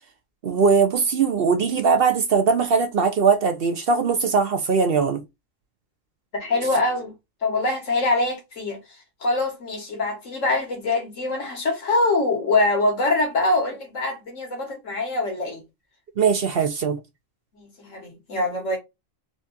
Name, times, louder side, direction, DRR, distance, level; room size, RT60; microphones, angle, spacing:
voice 1, 0.4-5.2 16.2-17.0, right 5 dB, 55° right, 0.7 m, -20 dB
voice 2, 6.3-7.1 7.4-8.8 9.2-15.6 17.5-18.8, left 2 dB, 80° left, 1.9 m, -24 dB
4.3 x 2.4 x 2.6 m
omnidirectional pair, 1.3 m